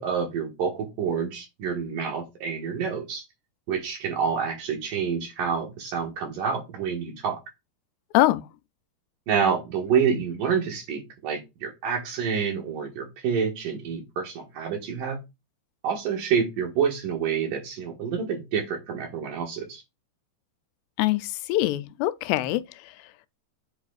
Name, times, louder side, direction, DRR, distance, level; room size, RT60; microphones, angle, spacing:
voice 1, 0.0-3.2 3.7-7.4 9.3-15.2 15.8-19.8, right 6 dB, 65° right, 2.7 m, -28 dB
voice 2, 21.0-22.6, left 16 dB, 90° left, 2.7 m, -23 dB
8.7 x 5.9 x 2.4 m
omnidirectional pair, 4.7 m